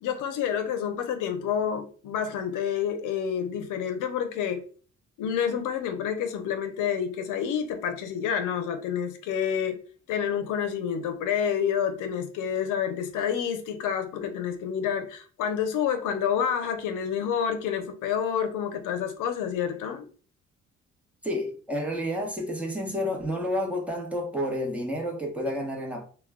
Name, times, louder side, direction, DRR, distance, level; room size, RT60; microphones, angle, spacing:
voice 1, 0.0-4.6 5.2-9.8 10.1-20.1, left 8 dB, 85° left, 0.6 m, -28 dB
voice 2, 21.2-26.1, equal, 5° right, 0.9 m, -30 dB
2.2 x 2.2 x 3.5 m
cardioid pair, 90°, 30 cm